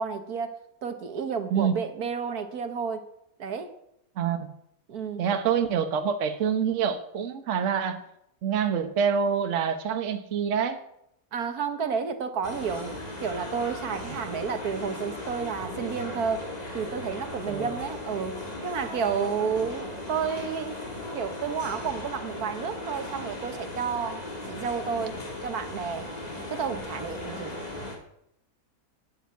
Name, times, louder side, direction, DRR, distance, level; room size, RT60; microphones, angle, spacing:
voice 1, 0.0-3.0 3.4-3.7 4.9-5.2 11.3-12.9 13.2-16.5 16.7-20.8 21.1-26.1 26.5-27.5, right 6 dB, 75° right, 9 dB, 1.6 m, -31 dB
voice 2, 4.2-4.5 5.2-8.0 8.4-10.8 14.1-14.2 17.5-17.7, right 7 dB, 55° right, 7 dB, 1.3 m, -26 dB
sound 1, 12.4-28.0, left 2 dB, 25° left, 2.4 m, -37 dB
12.0 x 7.2 x 9.3 m, 0.77 s
omnidirectional pair, 1.6 m